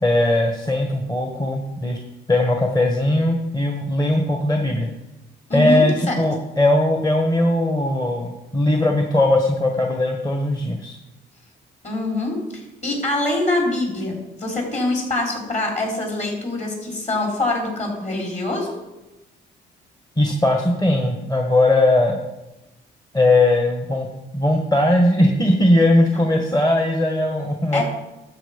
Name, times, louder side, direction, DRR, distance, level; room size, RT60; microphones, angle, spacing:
voice 1, 0.0-2.0 2.3-4.9 5.5-11.0 20.2-22.2 23.1-24.1 24.3-27.8, left 1 dB, 20° left, 3 dB, 1.5 m, -19 dB
voice 2, 5.5-6.2 11.8-18.7 27.7-27.8, left 2 dB, 35° left, 0 dB, 4.6 m, -24 dB
12.5 x 7.8 x 5.3 m, 1.0 s
cardioid pair, 90°, 20 cm